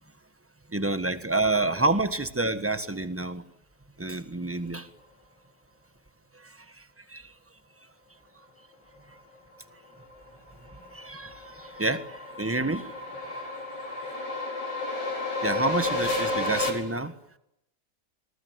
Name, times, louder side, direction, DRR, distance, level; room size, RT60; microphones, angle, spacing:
voice 1, 0.7-3.4 4.0-4.9 7.1-7.2 10.9-12.9 15.4-17.1, right 2 dB, 10° right, 10 dB, 1.2 m, -28 dB
sound 1, 10.1-16.7, left 2 dB, 90° left, 5.5 m, -32 dB
27.0 x 21.5 x 9.6 m, 0.84 s
omnidirectional pair, 1.8 m